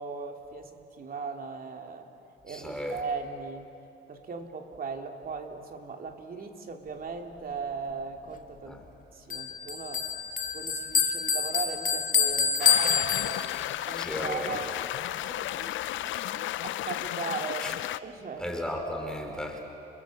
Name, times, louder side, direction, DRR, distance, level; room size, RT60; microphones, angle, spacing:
voice 1, 0.0-2.1 2.4-3.7 4.1-8.8 9.1-10.0 10.5-13.6 13.9-14.7 15.1-18.5 19.3-19.4, right 5 dB, 45° right, 4 dB, 2.8 m, -38 dB
voice 2, 2.5-3.0 8.7-8.8 14.0-14.6 17.6-17.7 18.4-19.6, left 1 dB, 5° left, 2 dB, 3.7 m, -35 dB
Bell, 9.3-13.8, left 6 dB, 40° left, 2.0 m, -27 dB
sound 1, 12.6-18.0, left 14 dB, 75° left, 0.5 m, -33 dB
29.0 x 21.5 x 7.7 m, 2.9 s
cardioid pair, 90°, 20 cm